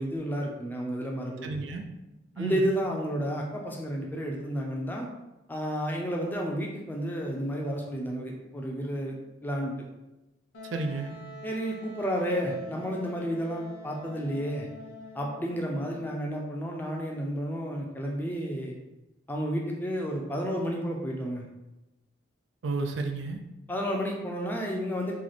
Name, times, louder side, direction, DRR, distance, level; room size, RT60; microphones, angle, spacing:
voice 1, 0.0-1.5 2.4-5.1 5.5-9.2 9.4-9.9 11.4-14.7 15.1-18.7 19.3-21.4 23.7-25.2, equal, 10° left, 0 dB, 0.4 m, -31 dB
voice 2, 1.4-1.8 2.4-2.7 10.7-11.1 22.6-23.4, right 3 dB, 80° right, 4 dB, 0.4 m, -32 dB
Wind instrument woodwind instrument, 10.5-16.1, left 2 dB, 80° left, 0.8 m, -45 dB
3.1 x 2.3 x 3.9 m, 0.97 s
head